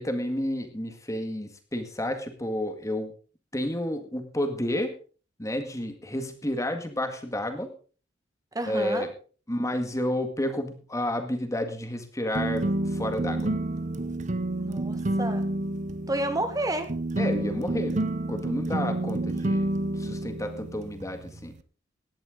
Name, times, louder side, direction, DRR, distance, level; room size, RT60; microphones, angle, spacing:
voice 1, 0.0-3.1 3.5-4.9 5.4-7.7 8.7-9.1 9.5-13.5 17.2-18.0 18.3-21.5, left 1 dB, 15° left, 7 dB, 2.0 m, -31 dB
voice 2, 8.5-9.1 14.6-15.4 16.1-16.9, right 1 dB, 20° right, 8 dB, 1.5 m, -30 dB
sound 1, 12.3-21.6, right 1 dB, 40° right, 0.8 m, -29 dB
17.0 x 11.0 x 3.9 m, 0.38 s
head